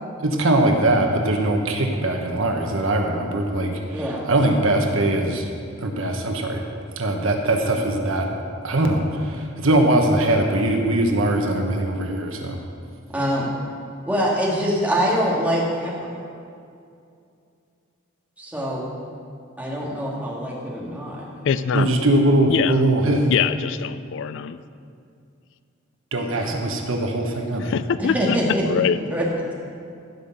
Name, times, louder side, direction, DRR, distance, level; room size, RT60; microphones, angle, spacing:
voice 1, 0.2-5.5 5.8-6.6 7.0-8.3 8.6-12.6 21.7-23.3 26.1-27.7, right 1 dB, 70° right, 2 dB, 1.3 m, -21 dB
voice 2, 3.9-4.3 13.1-13.5 14.1-15.9 18.4-19.0 19.6-21.3 26.4-26.5 28.0-28.6 29.1-29.3, equal, 10° right, -5 dB, 2.2 m, -24 dB
voice 3, 21.4-21.9 22.5-22.8 23.3-24.6 27.6-28.4 28.7-29.0, left 7 dB, 65° left, 14 dB, 0.4 m, -23 dB
15.0 x 5.6 x 6.7 m, 2.4 s
head